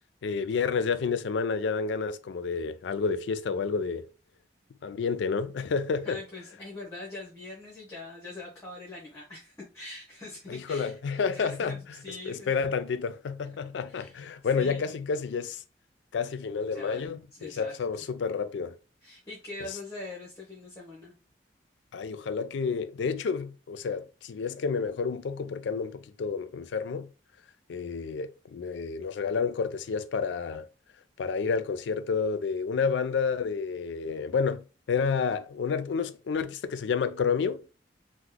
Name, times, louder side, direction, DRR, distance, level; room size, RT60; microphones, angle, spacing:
voice 1, 0.2-4.1 4.8-6.2 10.5-11.8 12.3-15.6 16.1-18.8 21.9-27.1 27.7-30.7 31.2-37.6, left 5 dB, 80° left, 0.4 m, -30 dB
voice 2, 6.0-12.5 13.9-14.2 14.6-14.9 16.7-17.8 19.0-21.1, left 2 dB, 15° left, 0.9 m, -43 dB
2.9 x 2.1 x 3.8 m
head